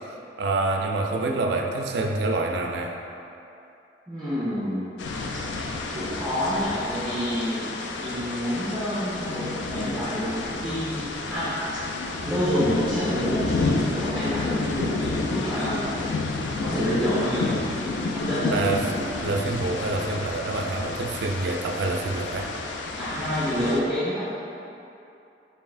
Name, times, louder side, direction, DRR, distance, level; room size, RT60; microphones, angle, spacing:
voice 1, 0.4-3.0 18.5-18.9 19.2-22.5, right 2 dB, 65° right, 2 dB, 0.3 m, -26 dB
voice 2, 4.1-5.0 5.3-5.4 5.9-7.7 8.0-11.6 12.2-16.1 16.6-17.4 18.1-18.5 23.0-24.2, equal, ahead, -15 dB, 1.1 m, -28 dB
sound 1, 5.0-23.8, left 3 dB, 80° left, 0.3 m, -30 dB
3.9 x 3.8 x 2.5 m, 2.7 s
head